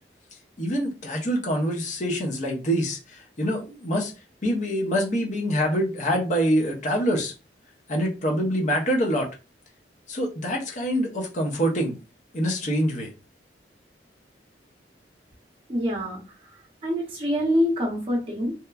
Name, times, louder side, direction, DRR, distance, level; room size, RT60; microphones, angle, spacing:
voice 1, 0.6-4.1 4.4-7.3 7.9-9.3 10.1-12.0 12.3-13.1, equal, 45° left, 0.7 m, -25 dB
voice 2, 15.7-16.2 16.8-18.5, equal, 30° right, 0.7 m, -25 dB
2.9 x 2.1 x 2.3 m
head